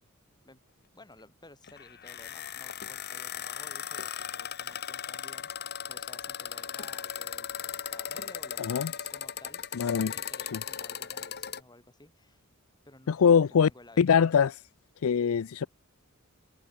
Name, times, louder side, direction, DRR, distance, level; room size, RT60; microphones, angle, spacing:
voice 1, 0.9-5.5 5.9-12.5 12.8-14.2, left 2 dB, 20° left, 4.7 m, -55 dB
sound 1, 1.6-11.6, left 9 dB, 50° left, 2.0 m, -37 dB
voice 2, 8.6-8.9 9.8-10.1 13.1-13.7 14.0-14.5 15.0-15.7, left 7 dB, 70° left, 0.4 m, -23 dB
head